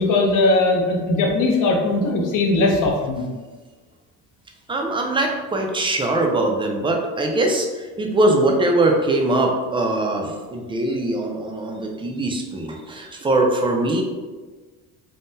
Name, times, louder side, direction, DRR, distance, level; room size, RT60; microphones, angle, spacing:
voice 1, 0.0-3.2, left 2 dB, 60° left, 0 dB, 0.7 m, -19 dB
voice 2, 4.7-14.0, right 2 dB, 15° right, 1 dB, 0.3 m, -21 dB
3.5 x 2.1 x 2.6 m, 1.3 s
cardioid pair, 115°, 36 cm